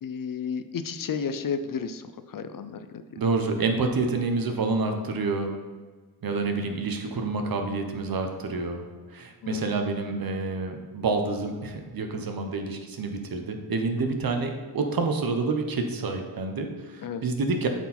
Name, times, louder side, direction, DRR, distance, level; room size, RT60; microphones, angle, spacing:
voice 1, 0.0-3.0 9.4-9.6 17.0-17.2, left 6 dB, 55° left, 11 dB, 0.5 m, -32 dB
voice 2, 3.2-5.5 6.2-8.8 9.1-17.7, right 3 dB, 55° right, 5 dB, 1.0 m, -28 dB
8.0 x 4.6 x 4.2 m, 1.4 s
wide cardioid pair, 110°, 41 cm